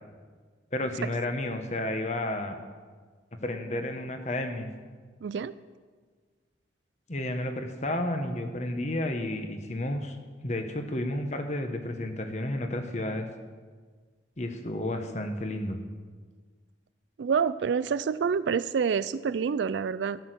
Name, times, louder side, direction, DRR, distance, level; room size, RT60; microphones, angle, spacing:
voice 1, 0.7-2.5 3.4-4.7 7.1-10.2 10.4-13.3 14.4-15.8, left 1 dB, 40° left, 6 dB, 1.1 m, -31 dB
voice 2, 5.2-5.5 17.2-20.2, right 6 dB, 75° right, 16 dB, 0.4 m, -27 dB
13.5 x 6.4 x 7.9 m, 1.5 s
head